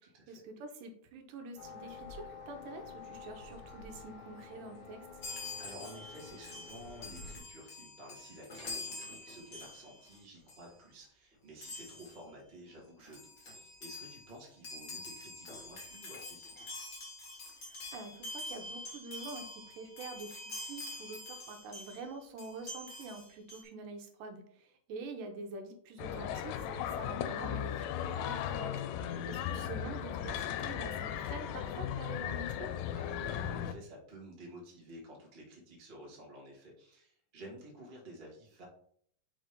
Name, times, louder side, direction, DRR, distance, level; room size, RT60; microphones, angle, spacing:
voice 1, 0.0-5.1 17.6-28.7 29.3-32.7, right 3 dB, 80° right, 5 dB, 2.4 m, -46 dB
sound 1, 1.6-7.4, left 4 dB, 50° left, 1.5 m, -49 dB
Chime, 5.2-10.2 10.5-10.7 11.6-12.2 12.8-12.9 13.0-22.0 22.4-23.6, left 2 dB, 30° left, 1.9 m, -46 dB
voice 2, 5.6-16.7 28.8-29.2 33.0-38.6, right 1 dB, 25° right, -2 dB, 1.2 m, -52 dB
sound 2, 26.0-33.7, left 9 dB, 85° left, 2.2 m, -37 dB
5.3 x 3.9 x 5.1 m, 0.63 s
omnidirectional pair, 3.9 m